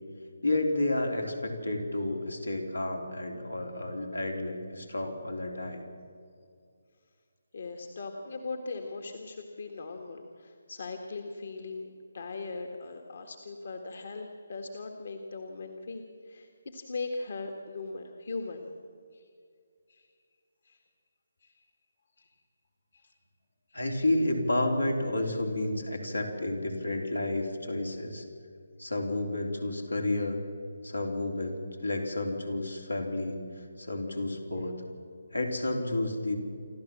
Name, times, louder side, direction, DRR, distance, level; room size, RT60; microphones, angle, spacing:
voice 1, 0.4-5.8 23.7-28.2 28.8-30.4 30.8-33.4 33.8-34.7 35.3-36.4, left 1 dB, 90° left, 2 dB, 3.7 m, -31 dB
voice 2, 7.5-11.9 12.1-18.7 19.1-19.2 19.9-20.1 20.7-20.8 21.4-21.5 22.2-22.3 22.9-23.0 23.7-23.8, left 3 dB, 55° left, 3 dB, 1.8 m, -39 dB
27.5 x 13.0 x 7.4 m, 2.3 s
figure-of-eight pair, 150°, 0 cm